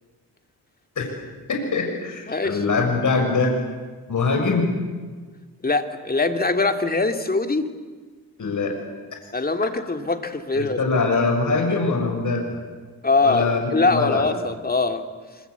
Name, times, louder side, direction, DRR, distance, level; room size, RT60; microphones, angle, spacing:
voice 1, 1.5-3.5 4.1-4.7 8.4-8.7 10.5-12.6 13.2-14.3, left 4 dB, 50° left, 2 dB, 6.5 m, -23 dB
voice 2, 2.3-2.6 5.6-7.7 9.3-10.8 13.0-15.0, left 3 dB, 25° left, 6 dB, 2.5 m, -22 dB
26.0 x 25.5 x 8.3 m, 1.4 s
cardioid pair, 85°, 37 cm